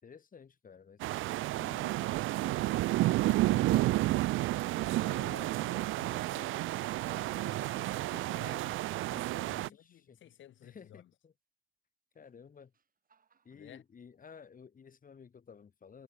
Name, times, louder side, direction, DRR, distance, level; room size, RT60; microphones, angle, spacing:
voice 1, 0.0-1.0 1.5-4.2 9.6-10.2 10.6-11.3 12.1-12.7 13.4-16.0, left 6 dB, 45° left, 4.3 m, -54 dB
sound 1, 1.0-9.7, right 17 dB, 85° right, 0.5 m, -31 dB
voice 2, 3.5-3.9 4.7-11.1 13.5-13.8, left 12 dB, 75° left, 3.0 m, -54 dB
sound 2, 10.3-10.4 12.1-13.8, right 6 dB, 45° right, 8.0 m, -70 dB
cardioid pair, 90°, 20 cm